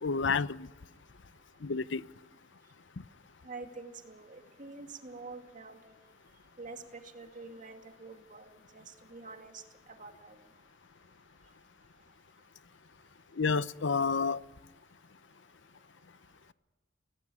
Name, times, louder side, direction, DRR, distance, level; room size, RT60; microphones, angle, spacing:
voice 1, 0.0-0.7 1.6-2.0 13.4-14.4, left 5 dB, 65° left, 17 dB, 0.6 m, -29 dB
voice 2, 3.4-5.8 6.6-8.8 9.1-9.6 10.0-10.4, right 3 dB, 40° right, 5 dB, 2.3 m, -46 dB
25.0 x 18.0 x 8.5 m, 1.3 s
head